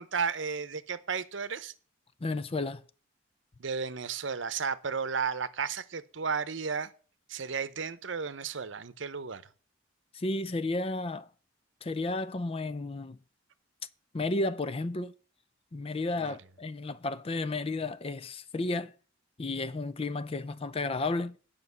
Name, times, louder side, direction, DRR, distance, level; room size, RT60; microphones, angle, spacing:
voice 1, 0.0-1.7 3.6-6.9 7.3-9.4 16.2-16.4, right 5 dB, 70° right, 0.8 m, -33 dB
voice 2, 2.2-2.8 10.1-11.3 11.8-13.2 14.1-15.1 15.7-18.9 19.4-21.4, left 2 dB, 30° left, 0.5 m, -32 dB
9.6 x 5.3 x 6.6 m
head